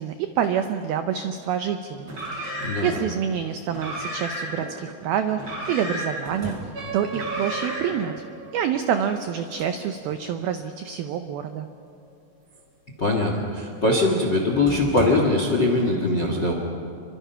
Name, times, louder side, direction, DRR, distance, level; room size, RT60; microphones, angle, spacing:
voice 1, 0.0-2.1 2.5-6.6 6.9-8.1 8.5-11.7, right 8 dB, 90° right, 7 dB, 2.1 m, -27 dB
Car, 2.0-3.0 3.7-4.7 5.3-6.4 7.1-8.0, right 1 dB, 30° right, 8.6 m, -32 dB
sound 1, 2.1-2.8 5.4-7.0 9.1-9.8 10.1-10.3 14.1-14.2 14.7-15.2, left 1 dB, 5° right, 3.6 m, -38 dB
sound 2, 6.7-11.7, right 5 dB, 55° right, 1.6 m, -39 dB
voice 2, 13.0-16.5, left 2 dB, 55° left, 2 dB, 1.2 m, -22 dB
28.5 x 24.0 x 5.7 m, 2.4 s
omnidirectional pair, 5.5 m